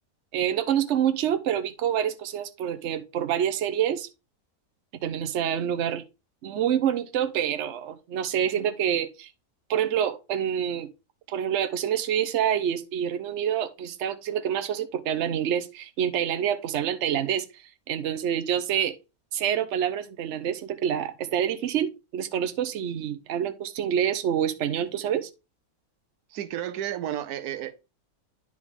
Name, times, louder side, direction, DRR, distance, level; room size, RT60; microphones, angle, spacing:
voice 1, 0.3-4.1 5.0-6.0 6.4-9.3 9.7-10.9 11.3-17.5 17.9-19.0 19.3-25.3, right 9 dB, 55° right, 1.0 m, -27 dB
voice 2, 26.3-27.8, right 11 dB, 90° right, 1.2 m, -32 dB
9.9 x 5.0 x 3.6 m
omnidirectional pair, 1.6 m